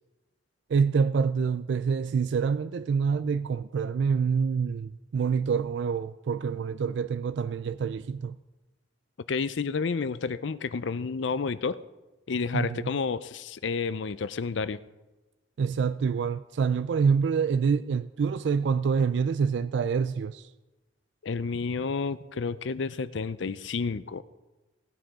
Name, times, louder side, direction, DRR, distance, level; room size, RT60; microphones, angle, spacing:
voice 1, 0.7-8.4 12.5-12.9 15.6-20.5, right 6 dB, 65° right, 0.3 m, -26 dB
voice 2, 9.3-11.8 12.3-14.8 21.2-24.2, left 4 dB, 70° left, 0.5 m, -30 dB
17.5 x 9.1 x 4.8 m
head